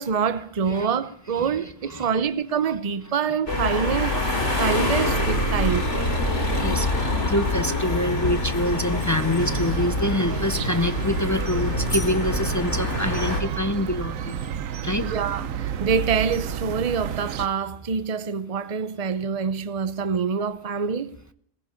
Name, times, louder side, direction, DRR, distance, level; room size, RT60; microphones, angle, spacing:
voice 1, 0.0-5.9 15.0-21.1, right 6 dB, 35° right, 0.8 m, -26 dB
sound 1, 3.5-13.4, left 1 dB, 60° left, 4.4 m, -25 dB
voice 2, 4.2-4.8 5.4-5.5 6.5-14.4 14.8-15.1, left 1 dB, 30° left, 0.3 m, -26 dB
sound 2, 9.4-17.5, right 9 dB, 85° right, 1.2 m, -31 dB
18.0 x 15.0 x 5.1 m
omnidirectional pair, 1.3 m